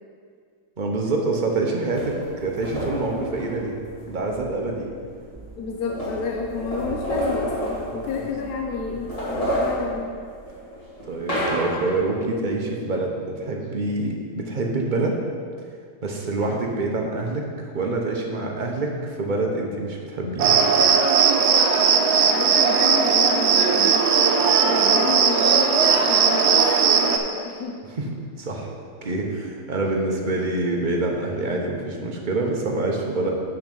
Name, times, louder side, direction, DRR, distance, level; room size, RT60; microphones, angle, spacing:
voice 1, 0.8-3.7 4.1-4.9 11.1-15.2 16.0-20.6 28.0-28.1 28.4-28.7 29.0-33.3, right 2 dB, 40° right, 0 dB, 0.8 m, -26 dB
sound 1, 1.9-4.1 5.1-5.2 5.4-8.6 8.9-12.1, equal, 20° left, 2.1 m, -29 dB
sound 2, 2.7-9.9, right 1 dB, 5° right, 2.0 m, -43 dB
voice 2, 5.6-10.2 16.5-16.7 22.2-24.1 24.6-26.6 27.0-27.8, left 4 dB, 75° left, 1 dB, 1.1 m, -31 dB
Cricket, 20.4-27.2, right 6 dB, 75° right, 1.2 m, -18 dB
7.3 x 5.9 x 5.3 m, 2.1 s
omnidirectional pair, 1.7 m